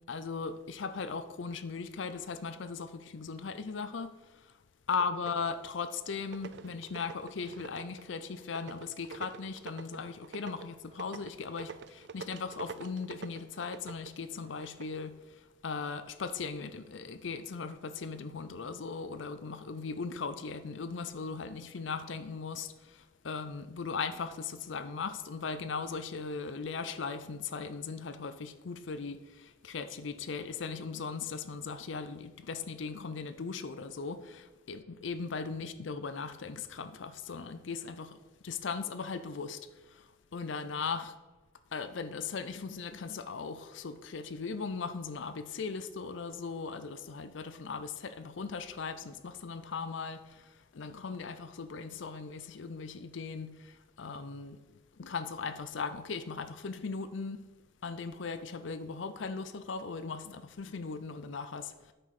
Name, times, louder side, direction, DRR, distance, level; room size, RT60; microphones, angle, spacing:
voice 1, 0.1-4.5 4.9-41.1 41.7-54.6 55.0-57.4 57.8-61.9, left 5 dB, 80° left, 0.6 m, -38 dB
sound 1, 5.1-5.7 6.1-15.0, right 5 dB, 65° right, 0.4 m, -47 dB
9.1 x 6.1 x 4.9 m
head